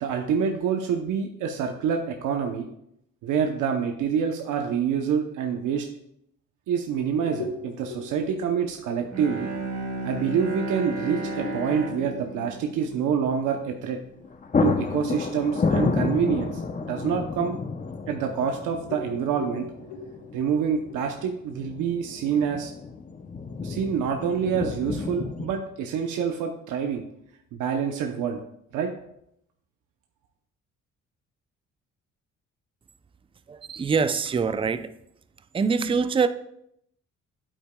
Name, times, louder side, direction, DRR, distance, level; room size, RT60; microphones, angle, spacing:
voice 1, 0.0-2.7 3.2-5.9 6.7-9.5 10.0-14.0 14.6-16.6 16.9-17.6 18.1-19.7 20.3-22.7 23.6-27.0 27.6-28.4 28.7-28.9, right 7 dB, 85° right, 0.8 m, -27 dB
sound 1, 6.9-14.0 14.4-14.5 14.9-18.5 18.9-22.0, left 2 dB, 85° left, 1.4 m, -41 dB
sound 2, 7.6-7.7 9.3-9.7 10.0-10.1 13.7-13.9 14.2-25.6, left 4 dB, 25° left, 0.6 m, -31 dB
Bowed string instrument, 9.0-13.9, right 1 dB, 55° right, 1.9 m, -34 dB
voice 2, 33.5-34.9 35.5-36.3, right 5 dB, 20° right, 0.4 m, -24 dB
8.7 x 8.4 x 2.2 m
cardioid pair, 90°, 30 cm